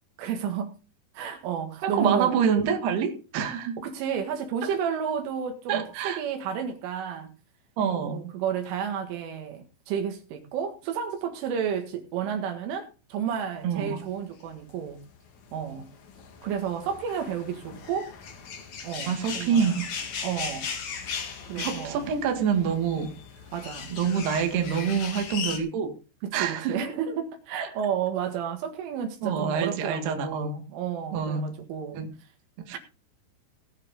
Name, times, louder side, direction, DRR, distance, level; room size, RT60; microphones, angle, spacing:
voice 1, 0.2-0.7 1.2-2.3 3.8-7.3 8.0-15.0 15.5-15.9 16.4-18.1 18.8-19.8 20.2-20.7 21.5-22.0 23.5-23.9 26.2-32.0 32.7-32.8, right 8 dB, 80° right, 4.2 m, -31 dB
voice 2, 1.8-3.8 4.6-4.7 5.7-6.2 7.8-8.3 13.6-14.0 19.1-19.9 21.6-23.1 23.9-25.9 26.3-26.8 29.2-30.6 31.1-31.5 31.9-32.1 32.6-32.8, right 7 dB, 65° right, 3.6 m, -26 dB
sound 1, 14.5-25.6, left 6 dB, 55° left, 2.2 m, -38 dB
19.0 x 7.5 x 3.8 m
omnidirectional pair, 5.6 m